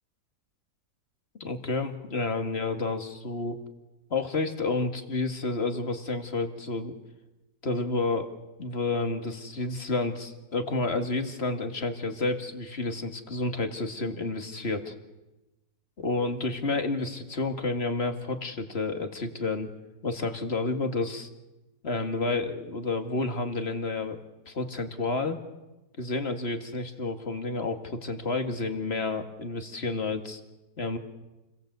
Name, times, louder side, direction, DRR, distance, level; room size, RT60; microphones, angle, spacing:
voice 1, 1.4-3.6 4.1-6.9 7.6-8.3 8.6-14.9 16.0-19.7 20.0-21.3 21.8-25.4 26.0-30.4 30.8-31.0, left 3 dB, 35° left, 6 dB, 2.3 m, -30 dB
29.5 x 22.0 x 8.1 m, 1.0 s
omnidirectional pair, 1.8 m